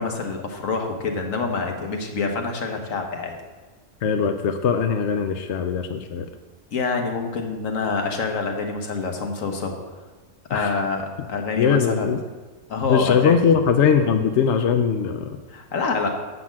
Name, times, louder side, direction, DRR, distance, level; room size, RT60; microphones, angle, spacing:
voice 1, 0.0-3.4 6.7-9.8 10.5-12.1 12.7-13.4 15.5-16.1, left 4 dB, 85° left, 3 dB, 1.6 m, -26 dB
voice 2, 4.0-6.3 10.5-10.8 11.6-12.2 12.9-15.3, left 6 dB, 65° left, 7 dB, 0.9 m, -20 dB
7.7 x 6.0 x 7.3 m, 1.2 s
omnidirectional pair, 1.3 m